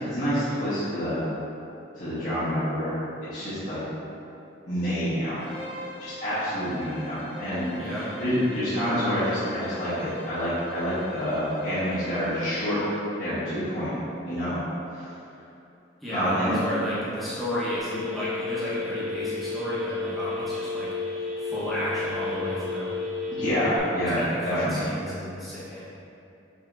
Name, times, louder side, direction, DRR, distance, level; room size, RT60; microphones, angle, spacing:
voice 1, 0.0-1.3 1.9-3.8 4.7-5.4 6.0-7.7 8.2-12.8 13.2-13.9 14.2-14.6 16.1-16.6 23.3-24.8, equal, 45° left, -15 dB, 1.2 m, -27 dB
Bowed string instrument, 5.4-13.1, equal, 30° left, 1.0 m, -42 dB
voice 2, 7.8-8.1 16.0-23.0 24.0-25.8, equal, ahead, -12 dB, 0.9 m, -32 dB
Telephone, 17.8-23.8, left 4 dB, 85° right, 1.2 m, -32 dB
6.5 x 2.8 x 2.5 m, 2.7 s
head